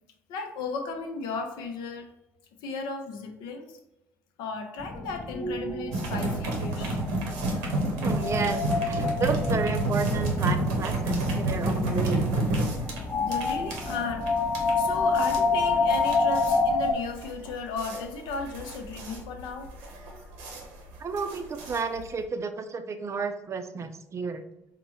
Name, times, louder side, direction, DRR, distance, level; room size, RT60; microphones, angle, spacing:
voice 1, 0.3-2.1 2.5-3.8 4.4-7.0 13.2-14.3 14.8-19.7, left 4 dB, 70° left, 5 dB, 0.6 m, -35 dB
sound 1, 4.8-16.9, left 3 dB, 20° left, 0.5 m, -29 dB
sound 2, 5.9-22.2, right 1 dB, 80° right, 0.8 m, -30 dB
voice 2, 7.9-12.3 21.0-24.4, right 5 dB, 35° right, 8 dB, 0.4 m, -32 dB
4.1 x 2.1 x 3.0 m, 0.92 s
hypercardioid pair, 55°, 8 cm